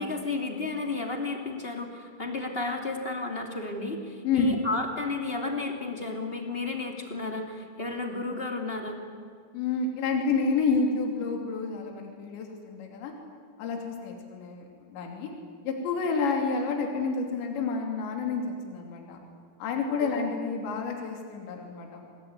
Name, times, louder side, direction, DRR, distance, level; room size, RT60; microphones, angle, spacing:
voice 1, 0.0-9.0 20.0-20.3, left 3 dB, 20° left, 3 dB, 1.6 m, -32 dB
voice 2, 4.2-4.6 9.5-13.1 13.6-15.3 15.6-19.2 19.6-22.1, left 4 dB, 70° left, 2 dB, 5.1 m, -29 dB
27.0 x 20.5 x 9.6 m, 2.2 s
omnidirectional pair, 5.4 m